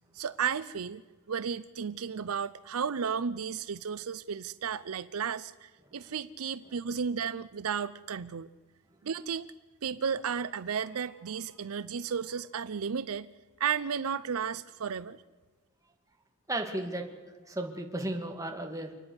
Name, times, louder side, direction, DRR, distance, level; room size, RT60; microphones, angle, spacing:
voice 1, 0.1-1.0 1.3-8.5 9.0-9.5 9.8-13.3 13.6-15.2, right 7 dB, 75° right, 15 dB, 0.6 m, -33 dB
voice 2, 16.5-17.1 17.4-18.9, right 1 dB, 15° right, 3 dB, 2.3 m, -35 dB
28.5 x 9.9 x 9.6 m, 1.4 s
head